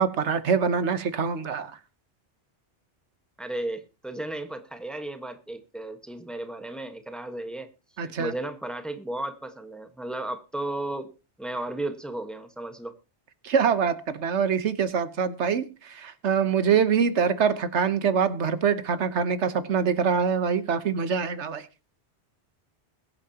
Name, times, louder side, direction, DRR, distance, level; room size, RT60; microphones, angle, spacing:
voice 1, 0.0-1.7 8.0-8.3 13.4-21.7, right 6 dB, 85° right, 1.3 m, -24 dB
voice 2, 3.4-7.7 8.0-11.1 11.4-12.9, right 1 dB, ahead, 1.3 m, -34 dB
22.0 x 8.4 x 2.9 m
omnidirectional pair, 1.1 m